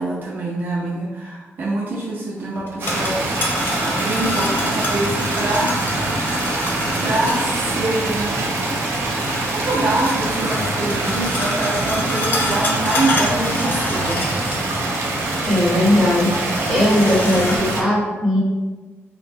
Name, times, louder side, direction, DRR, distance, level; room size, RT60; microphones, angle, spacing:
voice 1, 0.0-3.5 3.8-6.2 7.0-8.4 9.5-14.2, right 2 dB, 45° right, -5 dB, 0.5 m, -25 dB
sound 1, 2.6-7.7 9.2-14.9 15.2-15.3 16.2-17.6, left 1 dB, 45° left, 0.6 m, -27 dB
sound 2, 2.8-17.8, right 2 dB, 90° right, 0.6 m, -24 dB
voice 2, 15.4-16.3 16.7-18.4, left 1 dB, ahead, -8 dB, 1.2 m, -18 dB
3.9 x 2.1 x 3.4 m, 1.3 s
wide cardioid pair, 160°, 5 cm